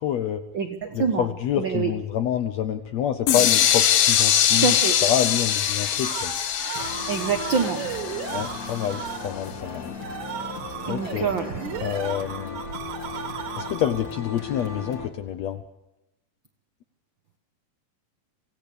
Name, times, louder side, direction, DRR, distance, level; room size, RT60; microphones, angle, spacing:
voice 1, 0.0-0.4 0.9-4.8 5.0-6.3 8.3-9.9 10.9-11.3 11.8-12.6 13.6-15.6, left 10 dB, 70° left, 9 dB, 1.6 m, -27 dB
voice 2, 0.5-1.3 1.6-1.9 4.6-5.0 7.1-7.8 10.9-11.5, right 6 dB, 90° right, 6 dB, 1.0 m, -25 dB
sound 1, 3.3-9.1, left 10 dB, 90° left, 3.0 m, -23 dB
sound 2, 5.7-14.2, right 8 dB, 65° right, 2.8 m, -35 dB
sound 3, 6.7-15.1, left 4 dB, 30° left, 2.0 m, -37 dB
25.0 x 17.0 x 6.9 m, 0.90 s
omnidirectional pair, 4.0 m